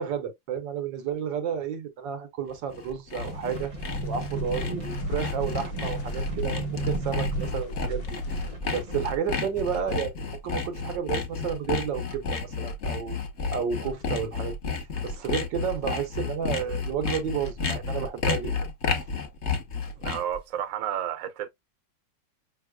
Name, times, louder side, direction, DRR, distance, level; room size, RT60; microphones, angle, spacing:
voice 1, 0.0-3.7 4.0-8.0 8.7-10.1 10.4-13.2 13.5-14.6 15.0-18.5, right 7 dB, 85° right, 1.7 m, -31 dB
Sawing, 2.5-20.4, left 4 dB, 45° left, 1.2 m, -31 dB
sound 1, 3.2-8.6, left 1 dB, 70° left, 0.7 m, -35 dB
sound 2, 3.2-9.0, right 3 dB, 30° right, 0.7 m, -36 dB
voice 2, 20.0-21.5, right 10 dB, 60° right, 1.0 m, -31 dB
5.4 x 3.5 x 2.2 m
omnidirectional pair, 1.9 m